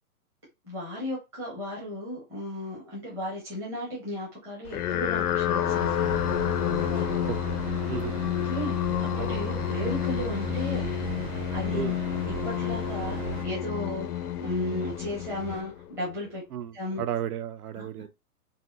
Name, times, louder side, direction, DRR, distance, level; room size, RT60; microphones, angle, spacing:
voice 1, 0.6-7.1 8.4-10.9 11.5-11.8 12.2-16.4 16.7-17.0 17.8-18.0, left 1 dB, 5° right, 0.7 m, -35 dB
sound 1, 4.7-16.1, left 11 dB, 75° left, 0.6 m, -29 dB
Train, 5.6-13.5, right 6 dB, 45° right, 0.8 m, -37 dB
voice 2, 16.5-18.1, right 10 dB, 75° right, 0.5 m, -33 dB
4.1 x 2.1 x 2.3 m
hypercardioid pair, 160°, 45 cm